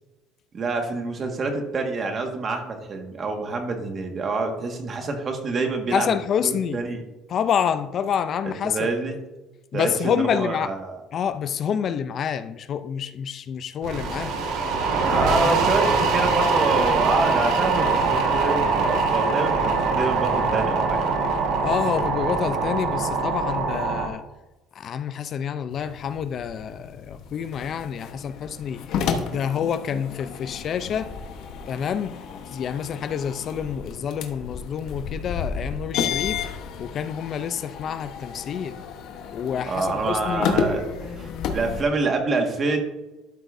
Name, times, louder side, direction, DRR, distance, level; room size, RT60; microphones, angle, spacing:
voice 1, 0.5-6.1 6.7-7.0 8.6-9.2 9.7-10.9 14.9-21.2 39.7-42.8, right 3 dB, 35° right, 1.7 m, -27 dB
voice 2, 5.9-6.8 7.3-8.9 9.7-10.8 11.1-14.4 15.4-15.6 21.6-24.2 24.7-31.1 31.7-32.2 32.5-36.4 36.8-38.8 39.3-40.5, left 8 dB, 50° left, 0.5 m, -28 dB
sound 1, 13.8-24.1, right 4 dB, 75° right, 1.5 m, -23 dB
sound 2, 25.7-41.8, left 6 dB, 70° left, 1.1 m, -32 dB
12.5 x 6.2 x 2.6 m
cardioid pair, 115°, 0 cm